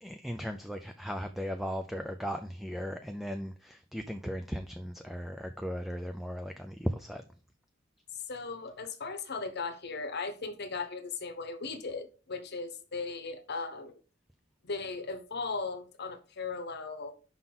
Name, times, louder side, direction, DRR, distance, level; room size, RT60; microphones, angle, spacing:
voice 1, 0.0-7.2, equal, ahead, 0.4 m, -37 dB
voice 2, 8.1-14.0 14.6-17.1, left 4 dB, 55° left, 0.9 m, -37 dB
5.5 x 3.8 x 5.9 m
head